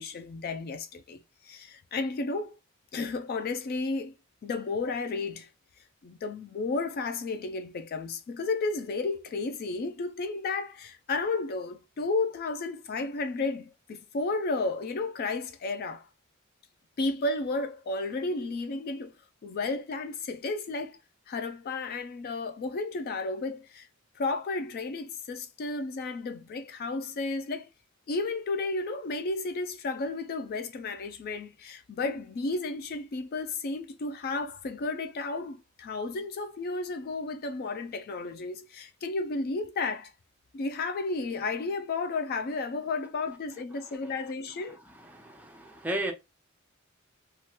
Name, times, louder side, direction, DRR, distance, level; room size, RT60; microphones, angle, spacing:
voice 1, 0.0-2.6 2.9-4.1 4.4-5.5 6.0-16.1 17.0-19.2 19.4-21.0 21.3-23.9 24.2-27.7 28.1-40.1 40.5-44.8, left 3 dB, 45° left, 0.3 m, -33 dB
voice 2, 45.0-46.1, right 1 dB, 10° right, 0.6 m, -34 dB
3.0 x 2.3 x 2.9 m
head